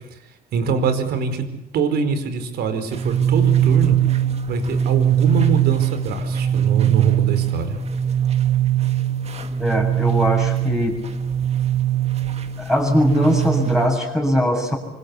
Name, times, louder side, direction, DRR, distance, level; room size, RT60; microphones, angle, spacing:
voice 1, 0.5-1.4 1.7-4.0 4.5-7.8, right 5 dB, 70° right, 9 dB, 4.7 m, -23 dB
sound 1, 2.9-13.9, right 11 dB, 40° right, 2.1 m, -21 dB
voice 2, 9.6-11.0 12.6-14.8, equal, 5° right, 0 dB, 7.4 m, -20 dB
26.0 x 25.0 x 8.6 m, 0.85 s
cardioid pair, 110°, 17 cm